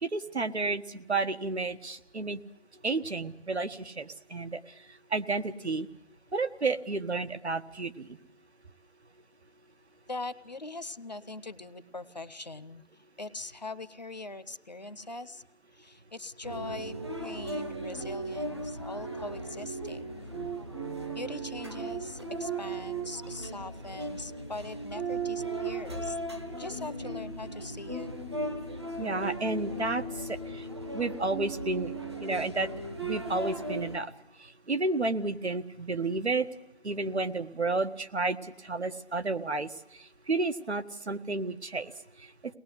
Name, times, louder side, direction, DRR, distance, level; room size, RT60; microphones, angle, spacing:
voice 1, 0.0-2.4 2.8-4.6 5.1-5.9 6.3-8.2 29.0-30.6 30.9-31.9 32.2-32.7 33.0-34.1 34.4-36.5 36.8-39.7 40.3-41.9, right 3 dB, 80° right, 9 dB, 1.6 m, -31 dB
voice 2, 10.1-15.4 15.7-20.3 21.1-26.2 26.6-28.1, left 2 dB, 40° left, 13 dB, 0.8 m, -41 dB
sound 1, 16.4-34.0, right 2 dB, 25° right, 0.9 m, -37 dB
22.5 x 19.5 x 7.9 m, 0.78 s
figure-of-eight pair, 170°, 33 cm